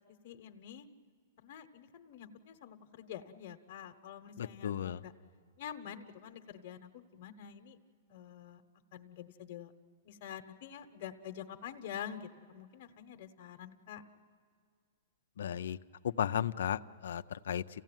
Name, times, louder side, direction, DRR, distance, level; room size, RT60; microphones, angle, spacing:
voice 1, 0.2-0.9 1.4-5.1 5.6-7.8 8.1-8.6 8.9-9.7 10.0-14.0, left 9 dB, 50° left, 6 dB, 1.1 m, -47 dB
voice 2, 4.4-5.0 15.4-15.8 16.0-17.6, left 9 dB, 80° left, 12 dB, 0.5 m, -34 dB
29.0 x 16.0 x 9.1 m, 2.1 s
hypercardioid pair, 150°, 0 cm